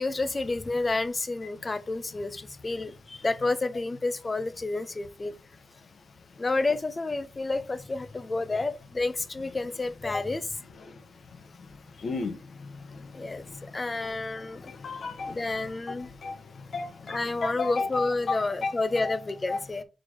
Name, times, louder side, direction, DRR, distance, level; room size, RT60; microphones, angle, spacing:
voice 1, 0.0-5.3 6.4-10.6 13.1-13.4 13.7-14.7 15.3-16.1 17.1-19.8, left 3 dB, 30° left, 0.7 m, -30 dB
voice 2, 12.0-12.4 14.8-15.4 15.9-16.0 16.2-16.4 16.7-18.7 19.0-19.1 19.5-19.6, left 3 dB, 55° left, 1.2 m, -32 dB
4.6 x 4.5 x 4.6 m
cardioid pair, 95°, 0 cm